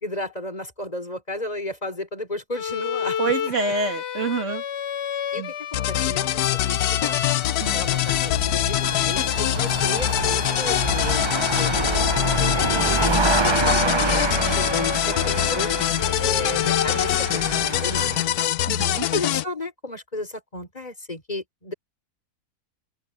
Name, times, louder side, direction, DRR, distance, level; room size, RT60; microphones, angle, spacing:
voice 1, 0.0-3.2 5.3-7.2 7.7-12.1 12.4-13.1 13.7-15.8 16.2-18.3 19.0-21.7, left 2 dB, 25° left, 4.1 m, -33 dB
Bowed string instrument, 2.5-17.4, left 8 dB, 50° left, 1.1 m, -31 dB
voice 2, 3.2-4.6 5.4-5.5 7.6-7.9 13.7-14.0 18.7-19.1, right 4 dB, 50° right, 2.6 m, -27 dB
sound 1, 5.7-19.4, left 13 dB, 85° left, 1.2 m, -24 dB
sound 2, 7.7-18.3, right 3 dB, 25° right, 0.7 m, -27 dB
omnidirectional pair, 1.6 m